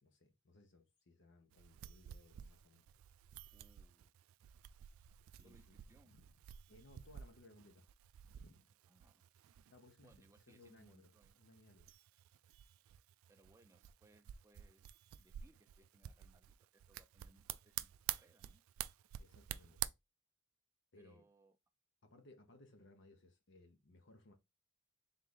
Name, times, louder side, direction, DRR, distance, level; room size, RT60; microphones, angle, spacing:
voice 1, 0.0-2.8 5.2-5.8 6.1-6.3 6.7-7.9 8.2-8.7 9.7-11.9 19.2-19.8 20.9-21.2 22.0-24.3, left 2 dB, 55° left, 0.9 m, -64 dB
sound 1, 1.5-19.9, right 13 dB, 80° right, 0.3 m, -49 dB
voice 2, 3.5-4.1 5.4-6.1 8.9-9.2 10.0-11.4 13.3-14.9 15.2-18.6 21.0-21.6, right 1 dB, 15° right, 0.4 m, -69 dB
3.7 x 3.2 x 3.8 m
head